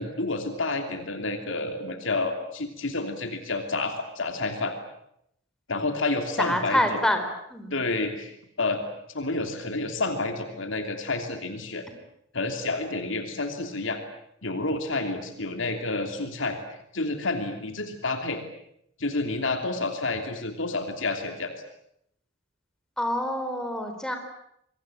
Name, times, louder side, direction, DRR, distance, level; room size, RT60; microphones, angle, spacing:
voice 1, 0.0-4.8 5.7-7.1 7.7-8.8 9.1-11.8 12.3-14.0 14.4-16.6 16.9-18.4 19.0-21.5, left 3 dB, 70° left, 6 dB, 2.9 m, -29 dB
voice 2, 6.4-7.2 7.5-7.7 23.0-24.2, left 1 dB, 5° left, 5 dB, 4.5 m, -26 dB
27.0 x 23.0 x 8.9 m, 0.75 s
head